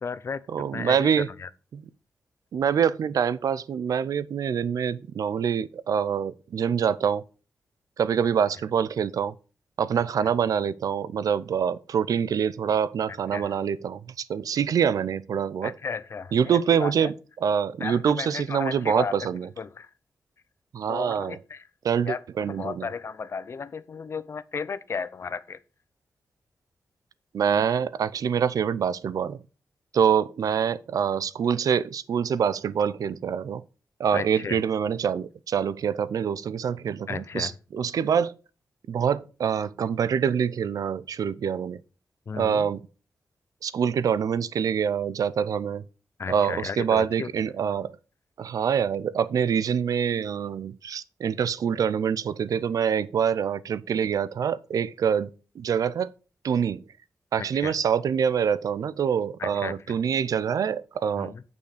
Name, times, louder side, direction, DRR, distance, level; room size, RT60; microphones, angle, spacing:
voice 1, 0.0-0.4 0.7-1.1 1.4-1.5 13.3-13.5 15.6-17.1 17.8-19.2 19.6-19.9 20.9-21.6 22.1-22.2 22.5-25.6 34.1-34.6 37.1-37.5 42.3-42.7 46.2-47.3 57.4-57.7 59.4-60.0 61.2-61.4, left 5 dB, 45° left, 0.6 m, -34 dB
voice 2, 0.5-1.3 1.7-1.8 2.5-7.2 8.0-9.3 9.8-15.8 16.3-17.1 17.4-19.5 20.7-21.4 21.8-22.9 27.3-29.4 29.9-33.6 34.0-38.3 38.9-41.8 42.3-42.8 43.6-45.8 46.3-48.0 48.4-55.3 55.6-56.1 56.4-56.8 57.3-61.3, right 7 dB, 85° right, 0.5 m, -25 dB
9.1 x 5.5 x 4.9 m
wide cardioid pair, 140°, 6 cm